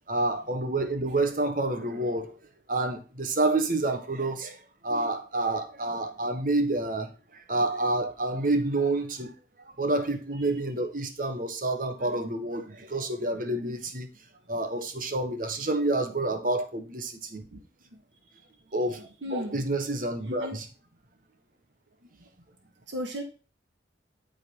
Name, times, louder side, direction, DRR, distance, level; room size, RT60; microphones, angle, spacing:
voice 1, 0.1-2.3 2.7-9.3 9.8-14.1 14.5-17.5 18.7-20.7, right 2 dB, 45° right, 1.4 m, -28 dB
voice 2, 12.0-12.4 13.5-13.8 17.5-17.6 18.9-19.6 20.2-20.6 22.9-23.2, equal, 80° right, 1.7 m, -37 dB
12.0 x 4.0 x 5.4 m
head